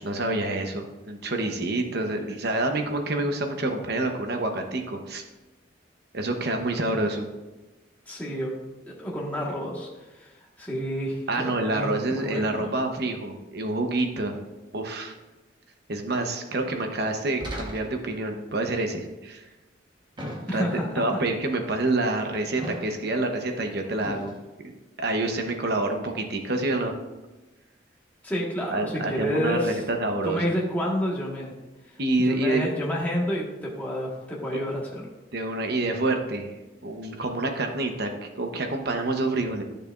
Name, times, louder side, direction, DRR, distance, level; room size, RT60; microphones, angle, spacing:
voice 1, 0.0-5.2 6.1-7.3 11.3-14.3 14.7-15.1 15.9-19.4 20.2-24.3 24.6-24.7 25.0-26.9 28.7-30.4 32.0-32.7 35.3-36.5 36.8-38.1 38.4-39.6, right 2 dB, 55° right, 4 dB, 0.9 m, -27 dB
voice 2, 8.1-8.6 8.9-12.7 20.5-21.2 28.2-29.8 30.2-31.5 31.9-35.1, equal, 10° left, -4 dB, 1.4 m, -30 dB
sound 1, 17.4-18.2 20.2-20.9 22.6-23.2 24.0-24.4, equal, 25° right, 1.1 m, -37 dB
11.0 x 6.7 x 2.5 m, 1.1 s
head